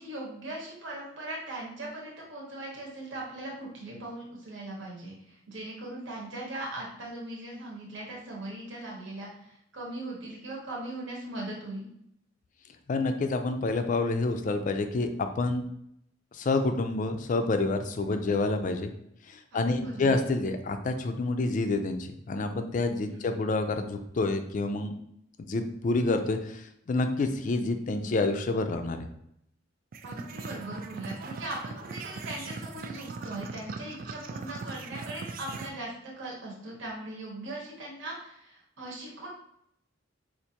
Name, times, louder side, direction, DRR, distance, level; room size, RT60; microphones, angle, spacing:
voice 1, 0.0-11.9 18.0-18.4 19.5-20.2 23.1-23.2 30.0-39.3, right 1 dB, 70° right, -3 dB, 0.9 m, -39 dB
voice 2, 12.9-15.7 16.3-18.9 19.3-24.9 25.4-26.6 26.9-29.0, left 3 dB, 40° left, 7 dB, 0.4 m, -28 dB
sound 1, 29.9-35.7, right 4 dB, 45° right, 0.3 m, -40 dB
4.4 x 2.5 x 2.8 m, 0.74 s
head